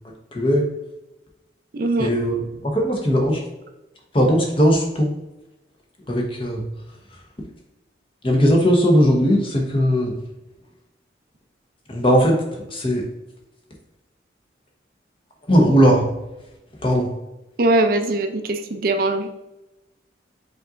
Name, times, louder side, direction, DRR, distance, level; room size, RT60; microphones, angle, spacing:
voice 1, 0.3-0.7 2.0-3.4 4.1-5.1 6.1-6.6 8.2-10.1 11.9-12.4 12.7-13.1 15.5-16.1 16.8-17.1, equal, 30° left, 1 dB, 0.9 m, -18 dB
voice 2, 1.7-2.1 17.6-19.3, right 2 dB, 50° right, 7 dB, 0.4 m, -21 dB
5.4 x 4.0 x 2.5 m, 0.98 s
head